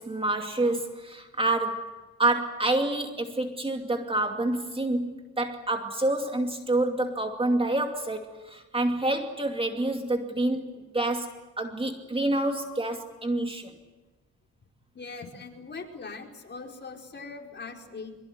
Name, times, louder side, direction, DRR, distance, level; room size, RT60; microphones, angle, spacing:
voice 1, 0.0-1.9 2.2-5.1 5.4-13.7, right 2 dB, 20° right, 5 dB, 2.5 m, -28 dB
voice 2, 14.9-18.1, left 4 dB, 35° left, 2 dB, 4.8 m, -41 dB
24.0 x 23.0 x 9.5 m, 1.2 s
cardioid pair, 90°, 30 cm